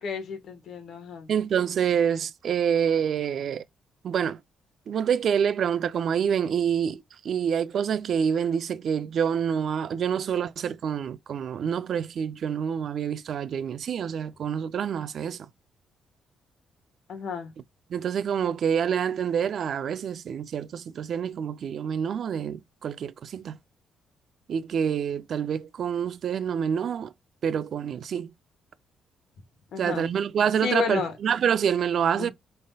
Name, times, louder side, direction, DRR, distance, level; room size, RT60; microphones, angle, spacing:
voice 1, 0.0-1.3 17.1-17.5 29.7-30.1 30.6-31.1 32.1-32.3, left 6 dB, 65° left, 1.3 m, -31 dB
voice 2, 1.3-3.6 4.0-4.4 4.9-15.5 17.9-23.6 24.5-27.1 27.4-28.3 29.8-32.3, right 8 dB, 60° right, 0.4 m, -27 dB
5.3 x 3.4 x 2.3 m
cardioid pair, 110°, 0 cm